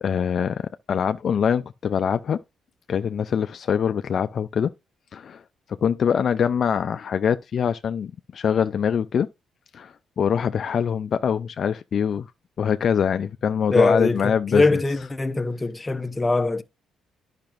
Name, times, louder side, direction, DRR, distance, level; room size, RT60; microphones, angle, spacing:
voice 1, 0.0-2.4 2.9-4.7 5.1-5.4 5.7-9.3 9.7-12.3 12.6-14.7, left 7 dB, 55° left, 0.4 m, -24 dB
voice 2, 13.7-16.6, left 2 dB, 20° left, 0.8 m, -22 dB
10.5 x 5.8 x 2.5 m
cardioid pair, 90°, 0 cm